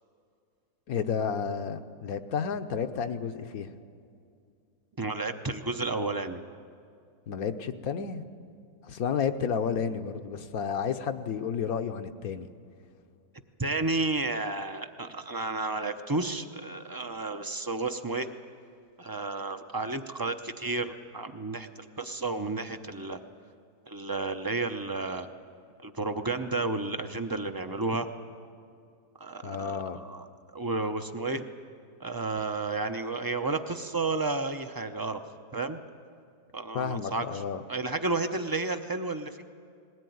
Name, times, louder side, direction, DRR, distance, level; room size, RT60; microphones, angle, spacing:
voice 1, 0.9-3.7 7.3-8.3 8.8-12.5 29.4-30.0 36.7-37.6, left 6 dB, 70° left, 9 dB, 1.3 m, -31 dB
voice 2, 5.0-6.4 13.6-18.3 19.0-23.2 23.9-25.3 25.8-28.1 29.2-30.3 30.5-31.4 32.0-35.2 35.5-35.8 36.5-37.4 37.7-39.4, right 3 dB, 25° right, 7 dB, 0.5 m, -32 dB
20.5 x 17.5 x 9.4 m, 2.3 s
omnidirectional pair, 1.6 m